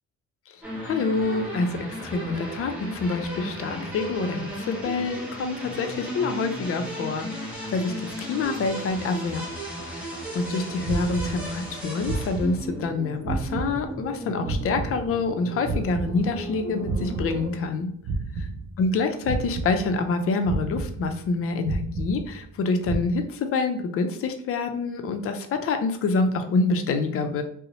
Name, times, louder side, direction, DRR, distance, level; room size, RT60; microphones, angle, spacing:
sound 1, 0.6-17.5, right 1 dB, 5° right, 0.7 m, -35 dB
voice 1, 0.8-9.4 9.9-10.0 10.3-17.9 18.8-27.4, left 3 dB, 50° left, 7 dB, 0.4 m, -27 dB
sound 2, 10.8-11.8 12.0-13.0 13.2-15.4 15.6-17.8 18.0-19.0 19.2-20.2 20.4-21.4 21.6-22.6 22.8-23.1, right 3 dB, 45° right, 0.5 m, -32 dB
2.6 x 2.0 x 2.8 m, 0.65 s
cardioid pair, 90°, 30 cm